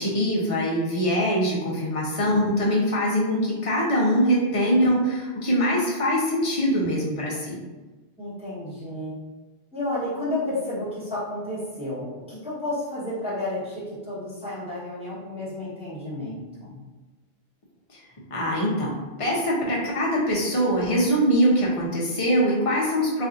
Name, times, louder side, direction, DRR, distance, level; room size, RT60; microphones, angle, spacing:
voice 1, 0.0-7.6 17.9-18.0 18.3-23.3, equal, 35° left, -4 dB, 0.7 m, -23 dB
voice 2, 8.2-9.2 9.7-16.8, left 1 dB, 5° right, -11 dB, 1.2 m, -31 dB
3.3 x 2.7 x 2.5 m, 1.2 s
omnidirectional pair, 1.1 m